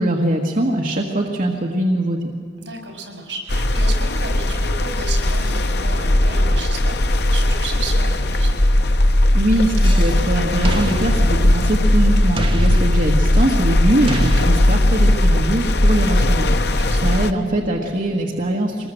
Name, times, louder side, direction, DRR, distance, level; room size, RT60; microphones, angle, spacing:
voice 1, 0.0-2.2 9.3-18.9, right 1 dB, 50° right, 0 dB, 1.6 m, -22 dB
voice 2, 2.6-8.6 12.6-12.9 14.6-15.0 16.7-17.1, right 3 dB, 75° right, 3 dB, 5.6 m, -34 dB
sound 1, 3.5-17.3, left 1 dB, 65° left, 1.0 m, -17 dB
sound 2, 9.8-10.2 10.6-11.9 12.4-13.5 14.1-15.1, right 1 dB, 30° right, 1.2 m, -28 dB
24.0 x 20.5 x 7.8 m, 2.1 s
head